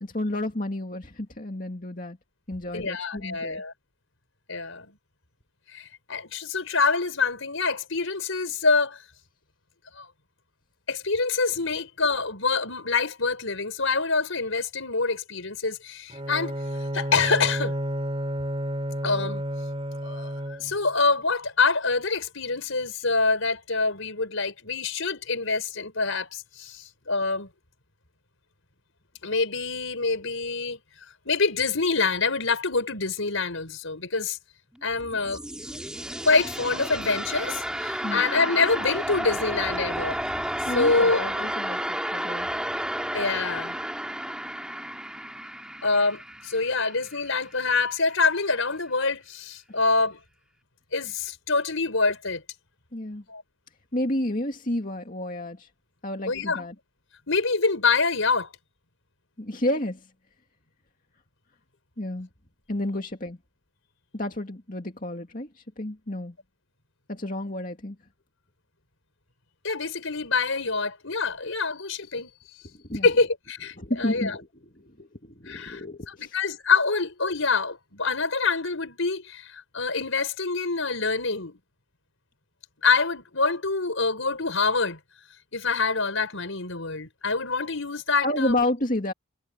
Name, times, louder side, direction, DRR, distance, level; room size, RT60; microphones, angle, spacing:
voice 1, 0.0-2.2 2.5-3.6 38.0-38.2 40.7-42.5 52.9-53.2 53.9-55.7 56.0-56.7 59.4-60.1 62.0-62.3 62.7-63.4 64.1-66.4 67.1-68.0 72.6-73.1 73.8-76.4 88.2-89.1, left 1 dB, 40° left, 2.4 m, -31 dB
voice 2, 2.7-3.7 4.5-4.9 5.7-9.0 9.9-10.1 10.9-16.6 16.9-17.7 19.0-19.4 20.0-27.5 29.2-30.8 31.2-34.4 34.8-35.4 36.2-40.2 40.7-41.2 43.1-43.8 45.8-50.2 50.9-52.4 53.3-53.4 56.3-56.6 57.3-58.5 69.6-72.3 73.0-74.4 75.5-81.6 82.8-85.0 85.5-88.6, left 4 dB, 75° left, 4.7 m, -26 dB
Bowed string instrument, 16.1-20.9, equal, 25° right, 3.3 m, -31 dB
sound 1, 34.7-47.6, right 1 dB, 5° right, 2.7 m, -32 dB
head